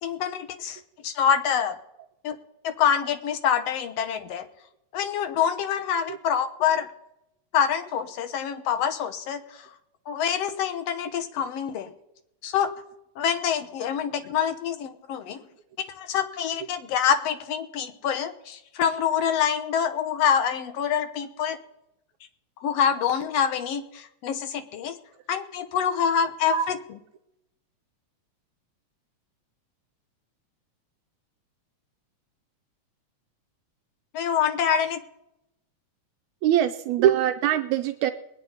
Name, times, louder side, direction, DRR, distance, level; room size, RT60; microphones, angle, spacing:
voice 1, 0.0-1.8 2.2-2.4 2.6-4.5 4.9-6.9 7.5-9.7 10.1-11.9 12.4-12.7 13.2-15.4 15.9-21.6 22.6-25.0 25.3-26.8 34.1-35.0, left 8 dB, 65° left, 8 dB, 1.9 m, -26 dB
voice 2, 36.4-38.1, right 11 dB, 85° right, 6 dB, 2.0 m, -23 dB
21.5 x 9.6 x 4.0 m, 0.83 s
omnidirectional pair, 3.3 m